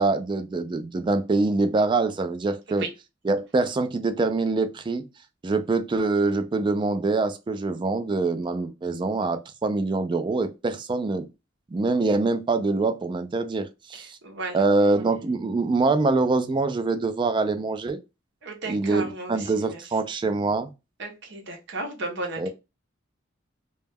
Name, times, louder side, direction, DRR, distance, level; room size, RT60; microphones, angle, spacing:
voice 1, 0.0-2.8 3.3-5.1 5.4-11.3 11.7-14.2 14.5-18.0 18.7-20.7 22.4-22.5, right 3 dB, 25° right, 0.3 m, -24 dB
voice 2, 13.9-14.6 18.4-20.0 21.0-22.5, right 2 dB, 65° right, 0.6 m, -35 dB
2.2 x 2.1 x 3.3 m
head